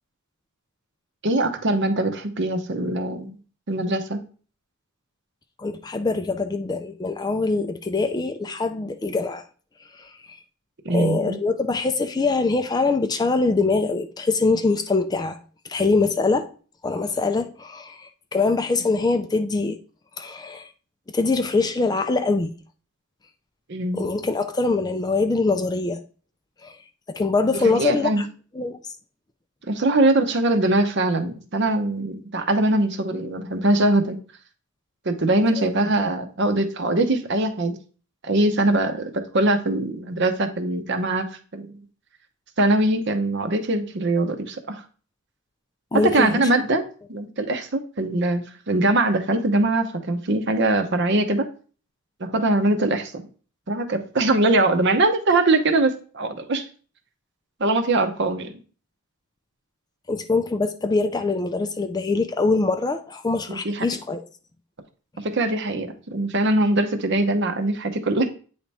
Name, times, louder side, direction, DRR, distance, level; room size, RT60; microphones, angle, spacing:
voice 1, 1.2-3.3 3.7-4.2 10.8-11.4 23.7-24.0 27.6-28.2 29.7-34.2 35.0-37.8 38.2-41.3 41.5-41.7 42.6-44.8 46.1-46.8 47.1-51.5 52.2-53.3 53.7-56.6 57.6-58.5 63.5-63.8 65.2-68.3, right 2 dB, 50° right, 0.8 m, -22 dB
voice 2, 5.6-9.4 9.9-10.4 10.9-15.4 15.6-16.5 16.8-19.8 20.2-20.7 21.1-22.5 23.9-26.0 26.6-26.8 27.1-28.3 28.5-28.9 35.6-35.7 45.9-46.5 60.1-64.2, left 3 dB, 20° left, 0.3 m, -23 dB
8.8 x 3.4 x 4.1 m
head